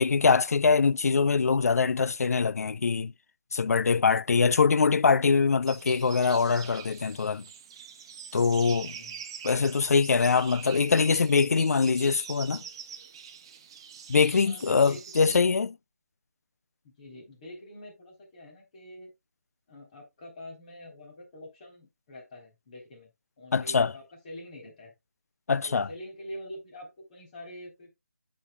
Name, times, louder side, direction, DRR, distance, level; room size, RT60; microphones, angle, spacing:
voice 1, 0.0-3.1 3.5-7.4 8.3-8.9 9.4-12.6 14.1-15.7 23.5-23.9 25.5-25.9, left 5 dB, 65° left, 0.4 m, -23 dB
sound 1, 5.7-15.4, right 7 dB, 20° right, 0.5 m, -44 dB
voice 2, 8.8-9.3 14.4-15.6 16.8-19.1 19.7-23.1 23.4-24.9 25.6-27.9, left 1 dB, 30° left, 3.6 m, -45 dB
15.0 x 5.2 x 2.3 m
figure-of-eight pair, 170°, 9 cm